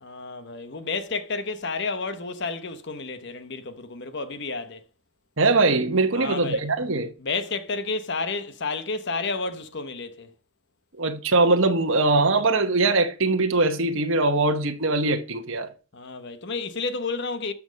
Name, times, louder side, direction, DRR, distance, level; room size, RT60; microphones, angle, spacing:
voice 1, 0.0-4.8 6.1-6.7 7.2-10.3 15.9-17.5, left 3 dB, 50° left, 1.0 m, -31 dB
voice 2, 5.4-7.1 11.0-15.7, right 3 dB, 60° right, 1.2 m, -21 dB
12.5 x 6.1 x 5.2 m
head